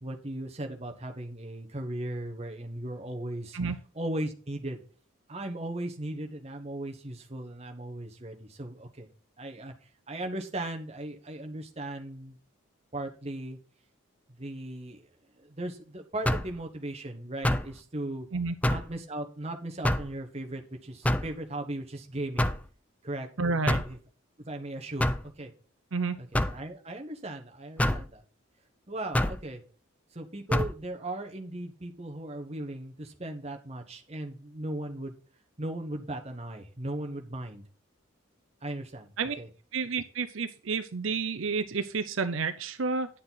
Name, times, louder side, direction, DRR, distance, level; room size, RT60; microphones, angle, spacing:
voice 1, 0.0-3.6 3.9-4.8 5.3-9.1 9.4-9.7 10.1-12.4 12.9-13.6 14.4-15.0 15.4-18.3 18.6-22.5 23.0-23.3 23.7-24.0 24.5-25.5 26.2-28.2 28.9-29.6 30.1-35.1 35.6-37.6 38.6-39.1 39.4-39.5, right 1 dB, 30° right, 3 dB, 1.2 m, -37 dB
sound 1, 16.3-16.6 17.4-17.7 18.6-18.9 19.8-20.1 21.0-21.3 22.4-22.7 23.7-24.0 25.0-25.3 26.3-26.6 27.8-28.1 29.1-29.4 30.5-30.7, left 1 dB, 5° left, 0.4 m, -26 dB
voice 2, 23.4-23.8 25.9-26.2 39.2-39.4 39.7-43.1, right 4 dB, 70° right, 10 dB, 0.7 m, -30 dB
10.0 x 6.8 x 4.0 m, 0.40 s
head